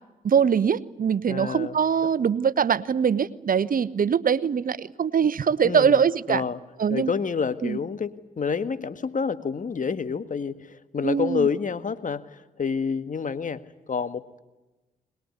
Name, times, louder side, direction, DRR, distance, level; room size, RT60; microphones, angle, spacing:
voice 1, 0.2-6.4 6.8-7.1 7.6-7.8 11.0-11.5, right 7 dB, 55° right, 17 dB, 1.1 m, -22 dB
voice 2, 1.3-1.8 5.6-6.0 6.3-6.6 6.9-13.6 13.9-14.4, left 5 dB, 50° left, 12 dB, 1.8 m, -28 dB
22.0 x 21.0 x 9.6 m, 1.1 s
supercardioid pair, 45°, 17 cm